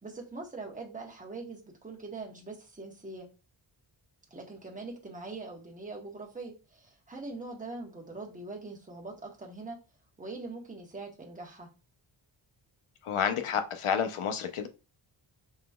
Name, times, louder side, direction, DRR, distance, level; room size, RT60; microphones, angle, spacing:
voice 1, 0.0-3.3 4.3-9.8 10.2-11.7, right 3 dB, 15° right, 0 dB, 1.0 m, -42 dB
voice 2, 13.0-14.7, left 7 dB, 85° left, 7 dB, 0.8 m, -30 dB
5.6 x 3.0 x 2.3 m, 0.31 s
wide cardioid pair, 175°, 49 cm